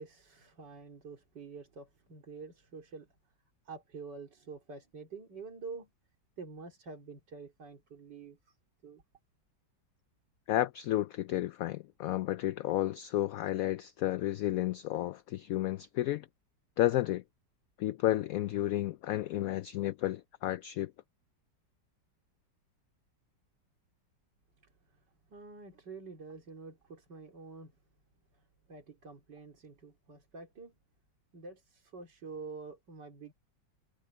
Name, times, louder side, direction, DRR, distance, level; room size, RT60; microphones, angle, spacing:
voice 1, 0.0-3.1 3.7-5.9 6.4-8.6 8.8-9.0 24.6-25.0 25.3-27.7 28.3-28.4 28.7-30.7 31.3-33.3, right 4 dB, 70° right, 3.8 m, -47 dB
voice 2, 10.5-16.3 16.8-17.2 17.8-20.9, left 14 dB, 75° left, 0.8 m, -32 dB
omnidirectional pair, 1.9 m